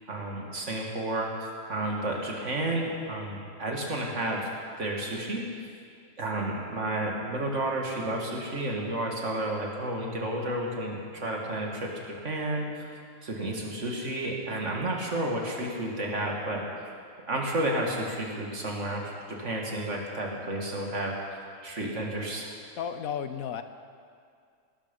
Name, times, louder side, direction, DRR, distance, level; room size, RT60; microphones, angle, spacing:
voice 1, 0.1-4.5 4.8-5.4 6.2-12.9 13.2-16.7 17.3-22.5, right 1 dB, 55° right, -1 dB, 2.5 m, -31 dB
voice 2, 22.8-23.6, left 8 dB, 85° left, 10 dB, 1.3 m, -33 dB
18.5 x 13.0 x 5.4 m, 2.3 s
omnidirectional pair, 1.5 m